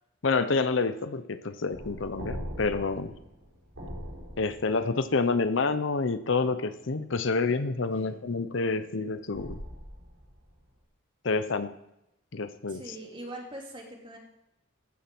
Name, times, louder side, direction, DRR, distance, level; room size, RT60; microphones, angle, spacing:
voice 1, 0.2-3.1 4.4-9.6 11.2-11.7 12.3-12.9, left 4 dB, 65° left, 12 dB, 0.7 m, -28 dB
sound 1, 1.7-5.0 9.3-10.6, equal, 70° right, 4.4 m, -41 dB
voice 2, 12.7-14.2, right 1 dB, 25° right, 0 dB, 2.6 m, -42 dB
15.0 x 7.2 x 6.1 m, 0.86 s
head